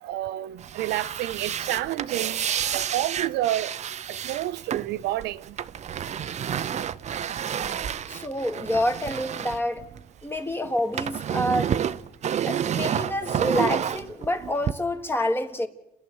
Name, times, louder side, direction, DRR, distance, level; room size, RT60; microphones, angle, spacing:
voice 1, 0.0-2.4 2.7-3.7 4.1-5.5, right 14 dB, 80° right, 0.7 m, -29 dB
sound 1, 0.6-10.4 10.7-14.7, right 9 dB, 40° right, 0.7 m, -30 dB
voice 2, 8.1-9.9 10.2-11.8 12.4-15.7, left 1 dB, 15° left, 1.8 m, -27 dB
30.0 x 11.0 x 8.1 m
cardioid pair, 110°, 17 cm